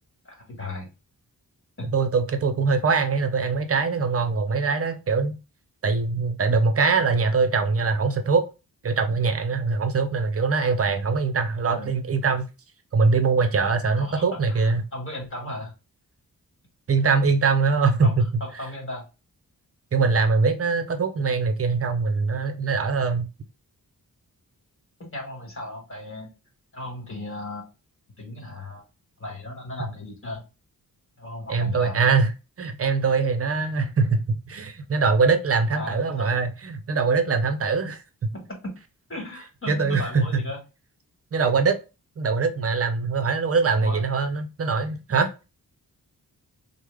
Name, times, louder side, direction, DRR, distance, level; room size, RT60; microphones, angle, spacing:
voice 1, 0.2-0.9 1.8-2.0 11.7-11.9 13.8-15.7 18.0-19.1 25.0-26.3 26.7-27.7 28.2-28.8 29.2-30.4 31.2-32.0 35.7-36.3 38.6-38.7 39.1-40.6 43.8-44.0, left 1 dB, 35° left, 1.6 m, -36 dB
voice 2, 1.9-5.4 5.8-8.5 8.8-12.5 12.9-14.8 16.9-18.3 19.9-23.3 31.5-32.3 32.6-38.3 39.7-40.2 41.3-41.8 42.2-45.3, right 4 dB, 40° right, 0.6 m, -22 dB
3.1 x 2.1 x 3.4 m
wide cardioid pair, 90°, 36 cm